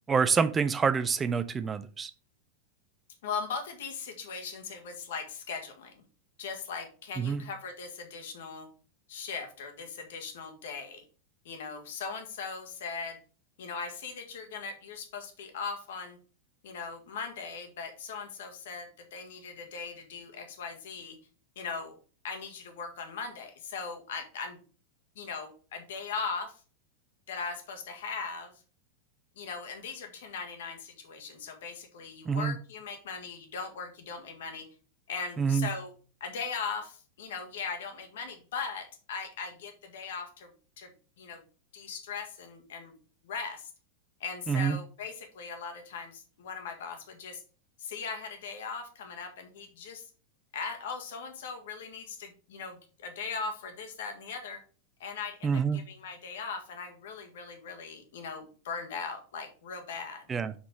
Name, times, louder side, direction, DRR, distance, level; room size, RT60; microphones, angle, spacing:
voice 1, 0.1-2.1 7.2-7.4 32.3-32.6 35.4-35.7 44.5-44.8 55.4-55.8 60.3-60.5, right 6 dB, 20° right, 12 dB, 0.5 m, -27 dB
voice 2, 3.2-6.0 6.4-8.7 9.1-11.0 11.4-13.2 13.6-16.2 16.6-21.2 21.5-22.0 22.2-24.6 25.1-26.6 27.3-28.6 29.3-34.7 35.1-35.9 36.2-41.4 41.7-42.9 43.2-43.7 44.2-47.4 47.8-50.1 50.5-54.6 55.0-60.3, left 5 dB, 55° left, 5 dB, 1.6 m, -39 dB
6.0 x 5.5 x 4.8 m, 0.38 s
figure-of-eight pair, 90°, 0 cm